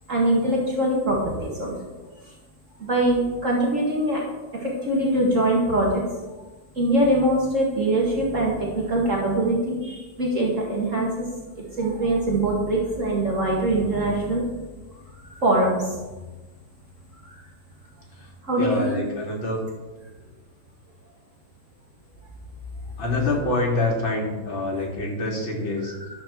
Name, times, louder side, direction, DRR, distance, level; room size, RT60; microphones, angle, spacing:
voice 1, 0.1-1.8 2.2-2.3 2.8-4.2 4.5-6.0 6.8-11.3 11.6-14.4 15.2-16.0 17.2-17.4 18.4-19.0, right 1 dB, 40° right, -3 dB, 2.3 m, -23 dB
voice 2, 18.6-19.6 23.0-25.9, left 2 dB, 85° left, -1 dB, 3.4 m, -26 dB
12.0 x 6.6 x 7.1 m, 1.2 s
omnidirectional pair, 2.1 m